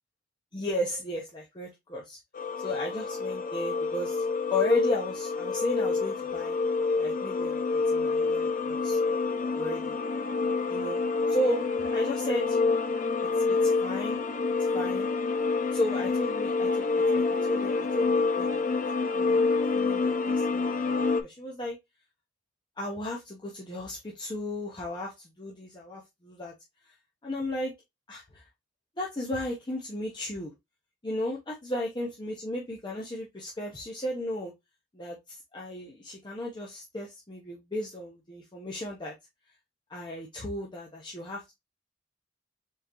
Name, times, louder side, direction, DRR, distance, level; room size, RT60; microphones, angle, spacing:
voice 1, 0.5-2.2 2.6-4.2 4.5-6.6 7.0-9.0 9.5-10.0 10.7-11.0 11.3-12.6 13.5-14.2 14.7-15.1 15.7-18.8 19.1-21.8 22.8-26.5 27.2-27.7 28.1-28.4 29.0-30.5 31.0-34.5 34.9-39.1 39.9-41.5, left 1 dB, 25° left, 0.8 m, -34 dB
sound 1, 2.3-21.2, left 4 dB, 45° left, 0.4 m, -27 dB
3.8 x 3.7 x 2.9 m
head